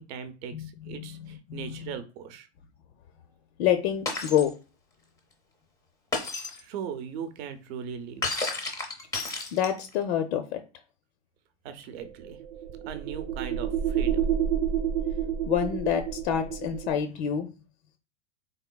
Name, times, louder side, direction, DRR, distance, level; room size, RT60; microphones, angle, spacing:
voice 1, 0.0-2.5 6.2-6.3 6.5-8.2 11.6-12.4 12.8-14.3, right 7 dB, 50° right, 10 dB, 0.7 m, -39 dB
voice 2, 0.5-1.1 1.5-1.9 3.6-4.5 9.5-10.6 15.5-17.5, left 9 dB, 55° left, 7 dB, 0.5 m, -27 dB
Shatter, 4.1-4.5 6.1-6.6 8.2-9.9, left 3 dB, 10° left, 0.5 m, -31 dB
sound 1, 12.0-17.0, right 9 dB, 85° right, 0.7 m, -29 dB
3.8 x 3.5 x 2.2 m, 0.33 s
supercardioid pair, 145°, 38 cm